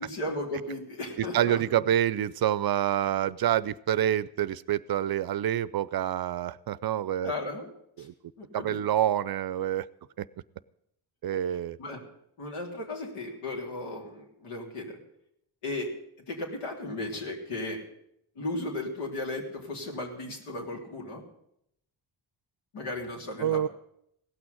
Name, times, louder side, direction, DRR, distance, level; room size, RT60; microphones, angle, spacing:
voice 1, 0.0-1.8 7.2-7.7 8.0-8.1 8.4-8.8 11.8-12.0 12.4-15.0 15.6-15.9 16.3-17.8 18.4-21.2 22.7-23.7, left 2 dB, 85° left, 0 dB, 3.5 m, -35 dB
voice 2, 1.2-7.3 8.0-8.1 8.5-9.9 10.2-10.3 11.2-11.8 23.4-23.7, right 11 dB, 50° right, 18 dB, 0.5 m, -27 dB
17.0 x 6.2 x 9.3 m, 0.76 s
cardioid pair, 80°, 50 cm